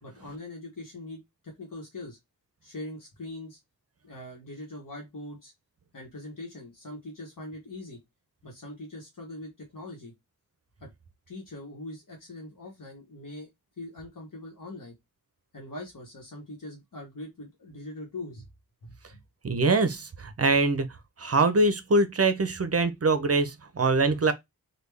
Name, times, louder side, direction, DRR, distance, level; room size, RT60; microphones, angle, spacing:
voice 1, 0.0-2.2 2.6-3.6 4.0-5.5 5.9-8.0 8.4-10.1 10.8-10.9 11.3-13.5 13.8-14.9 15.5-18.5 18.8-19.2, left 1 dB, 65° left, 1.1 m, -42 dB
voice 2, 19.4-20.9 21.2-24.3, right 3 dB, 45° right, 0.6 m, -23 dB
3.4 x 2.3 x 3.3 m
wide cardioid pair, 65°, 35 cm